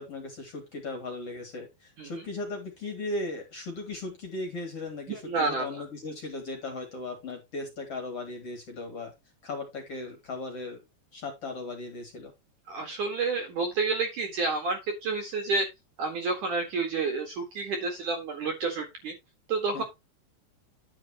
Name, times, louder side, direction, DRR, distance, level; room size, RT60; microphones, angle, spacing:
voice 1, 0.0-9.1 9.4-10.8 11.1-12.3 19.7-19.8, left 2 dB, 35° left, 4 dB, 3.1 m, -37 dB
voice 2, 5.1-5.8 12.7-15.7 16.0-19.1 19.5-19.8, right 4 dB, 55° right, 3 dB, 2.8 m, -29 dB
10.5 x 7.9 x 3.0 m, 0.22 s
omnidirectional pair, 5.4 m